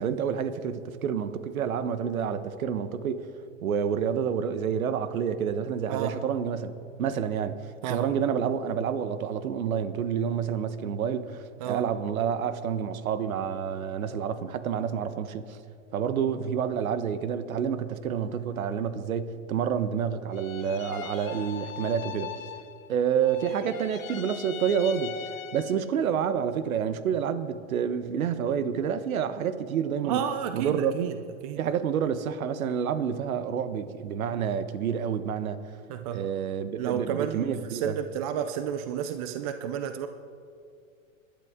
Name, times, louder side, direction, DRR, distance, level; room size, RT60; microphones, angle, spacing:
voice 1, 0.0-3.3 3.6-6.7 7.0-15.6 15.9-22.3 22.9-25.2 25.5-30.2 30.5-31.0 31.6-35.6 36.1-38.0, right 7 dB, 85° right, 11 dB, 1.2 m, -28 dB
sound 1, 20.3-23.0 23.2-26.0, left 10 dB, 75° left, 1.6 m, -41 dB
voice 2, 30.0-31.2 31.4-31.6 35.9-36.3 36.8-40.1, right 9 dB, 30° right, 8 dB, 0.4 m, -31 dB
26.0 x 12.0 x 3.7 m, 2.3 s
supercardioid pair, 150°, 41 cm